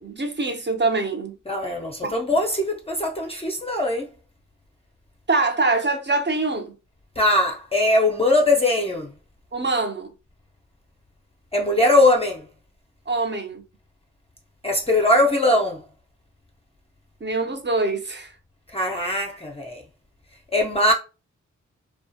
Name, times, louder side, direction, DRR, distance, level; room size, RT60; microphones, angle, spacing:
voice 1, 0.0-1.3 2.0-2.3 5.3-6.7 9.5-10.1 13.1-13.6 17.2-18.3, right 3 dB, 35° right, 0.7 m, -24 dB
voice 2, 1.5-4.1 7.2-9.1 11.5-12.4 14.6-15.8 18.7-19.8 20.5-20.9, left 1 dB, 20° left, 0.6 m, -21 dB
2.3 x 2.2 x 2.6 m
cardioid pair, 50°, 32 cm